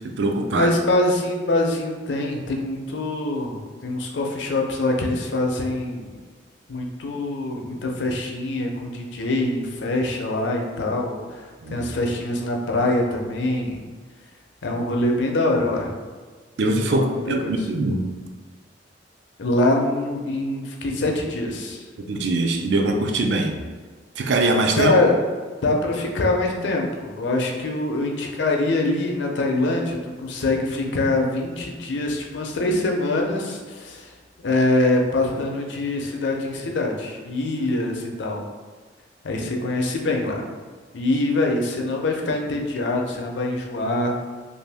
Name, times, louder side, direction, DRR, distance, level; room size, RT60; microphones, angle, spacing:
voice 1, 0.0-0.7 11.6-11.8 16.6-18.1 22.0-23.6 24.2-24.9, right 2 dB, 65° right, 4 dB, 0.4 m, -22 dB
voice 2, 0.5-3.6 3.8-6.1 6.7-11.4 11.7-13.8 14.6-15.9 16.9-17.6 19.4-21.8 24.8-25.2 25.6-34.1 34.4-38.4 39.2-40.4 40.9-44.2, left 2 dB, 75° left, 1 dB, 0.5 m, -24 dB
2.6 x 2.6 x 3.3 m, 1.4 s
head